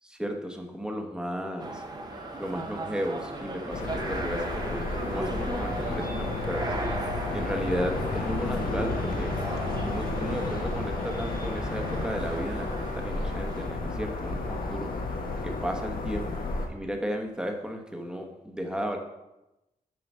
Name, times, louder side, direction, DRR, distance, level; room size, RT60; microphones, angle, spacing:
voice 1, 0.2-1.8 2.4-6.7 7.3-9.3 9.8-14.9 15.4-19.0, equal, 5° right, 3 dB, 1.1 m, -34 dB
sound 1, 1.6-13.8, right 2 dB, 25° right, 1.0 m, -37 dB
sound 2, 2.1-12.9, right 1 dB, 75° right, 2.4 m, -47 dB
sound 3, 3.7-16.7, left 3 dB, 75° left, 1.4 m, -32 dB
7.8 x 5.0 x 6.2 m, 0.96 s
wide cardioid pair, 125°, 15 cm